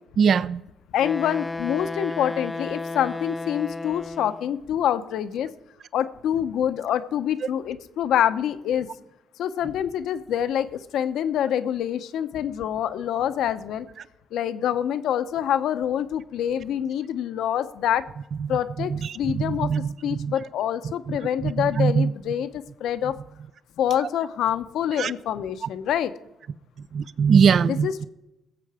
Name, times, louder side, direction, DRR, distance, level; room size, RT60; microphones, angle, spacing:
voice 1, 0.2-0.6 18.4-20.3 21.1-22.1 25.0-25.1 25.6-25.7 26.9-28.0, right 6 dB, 55° right, 0.5 m, -22 dB
voice 2, 0.9-5.5 5.9-8.9 9.4-13.9 14.3-18.0 18.5-19.7 20.0-23.2 23.8-26.1 27.7-28.0, left 10 dB, 80° left, 0.8 m, -26 dB
Wind instrument woodwind instrument, 1.0-4.5, left 3 dB, 15° left, 0.5 m, -33 dB
19.5 x 7.8 x 4.9 m
cardioid pair, 90°, 0 cm